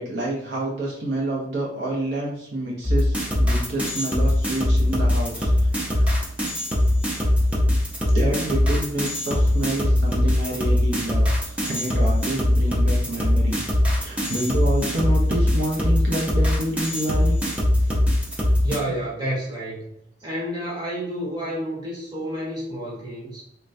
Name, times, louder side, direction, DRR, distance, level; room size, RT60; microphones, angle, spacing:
voice 1, 0.0-6.1 7.1-7.3 8.1-17.4, right 1 dB, 70° right, -3 dB, 0.7 m, -28 dB
sound 1, 2.8-18.8, left 1 dB, 5° right, 0.5 m, -21 dB
voice 2, 18.6-19.9 20.2-23.4, equal, 20° right, -6 dB, 1.2 m, -30 dB
3.2 x 2.2 x 2.5 m, 0.78 s
head